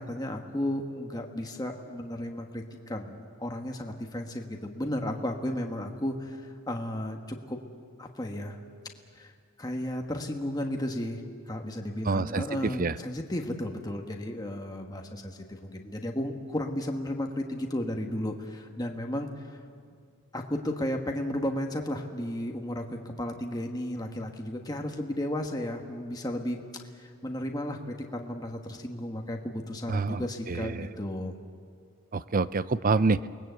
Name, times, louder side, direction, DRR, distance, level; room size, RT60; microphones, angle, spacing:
voice 1, 0.0-7.6 8.0-8.6 9.1-9.3 9.6-19.4 20.3-26.6 26.9-31.4, left 1 dB, 15° left, 2 dB, 1.4 m, -34 dB
voice 2, 12.1-13.0 29.9-30.9 32.1-33.2, right 4 dB, 40° right, 16 dB, 0.5 m, -27 dB
28.5 x 20.5 x 8.1 m, 2.2 s
head